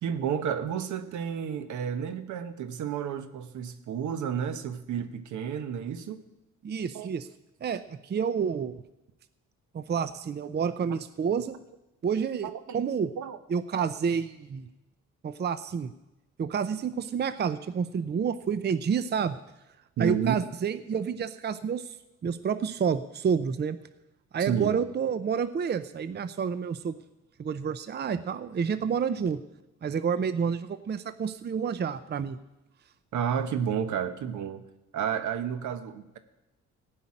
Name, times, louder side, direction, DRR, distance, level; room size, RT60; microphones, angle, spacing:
voice 1, 0.0-6.2 6.9-7.1 12.4-12.8 13.2-13.4 20.0-20.4 24.4-24.8 33.1-34.7 34.9-36.2, right 8 dB, 75° right, 11 dB, 1.2 m, -31 dB
voice 2, 6.6-7.3 7.6-8.8 9.7-11.6 12.0-13.1 13.5-14.7 15.2-15.9 16.4-19.4 20.0-22.0 22.2-23.8 24.3-27.0 27.4-29.4 29.8-32.4, right 6 dB, 35° right, 12 dB, 0.6 m, -29 dB
15.5 x 5.7 x 9.8 m, 0.97 s
cardioid pair, 90°, 30 cm